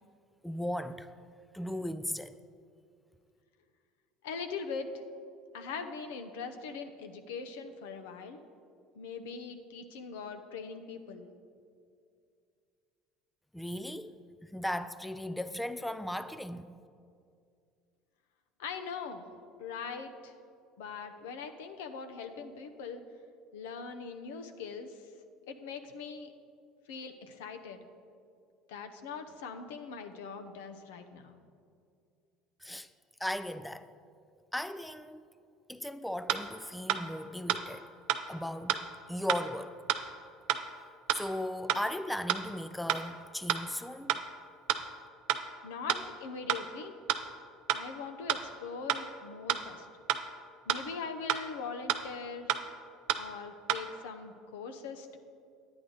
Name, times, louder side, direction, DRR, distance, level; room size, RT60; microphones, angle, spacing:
voice 1, 0.4-1.1 1.5-2.4 13.5-14.1 14.4-16.7 32.6-32.9 33.2-33.9 34.5-35.3 35.7-37.9 38.3-39.7 41.1-44.2, left 1 dB, 5° left, 0.4 m, -37 dB
voice 2, 4.2-4.9 5.5-8.4 8.9-11.3 18.6-19.3 19.6-20.3 20.8-23.0 23.5-25.1 25.5-26.3 26.9-27.8 28.7-31.4 45.6-46.9 47.7-49.9 50.7-52.5 53.2-55.2, left 5 dB, 90° left, 0.7 m, -41 dB
sound 1, 36.3-36.4 36.9-37.0 37.5-37.6 38.1-38.2 38.7-38.8 39.3-39.4 39.9-40.0 40.5-40.6 41.1-41.2 41.7-41.8 42.3-42.4 42.9-43.0 43.5-43.6 44.1-44.2 44.7-44.8 45.3-45.4 45.9-46.0 46.5-46.6 47.1-47.2 47.7-47.8 48.3-48.4 48.9-49.0 49.5-49.6 50.1-50.2 50.7-50.8 51.3-51.4 51.9-52.0 52.5-52.6 53.1-53.2 53.7-53.8, right 12 dB, 75° right, 0.5 m, -28 dB
9.7 x 9.1 x 3.9 m
supercardioid pair, 90°, 0 cm